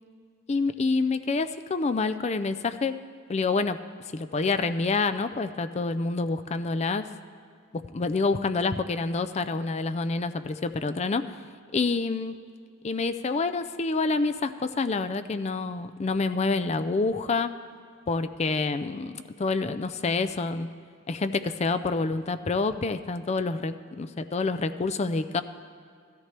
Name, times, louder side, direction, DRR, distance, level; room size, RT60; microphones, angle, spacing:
voice 1, 0.5-3.0 3.3-3.8 4.1-7.0 7.7-11.2 11.7-12.4 12.8-17.5 18.1-20.7 21.1-25.4, left 3 dB, 30° left, 10 dB, 0.4 m, -27 dB
15.5 x 13.5 x 3.3 m, 2.2 s
head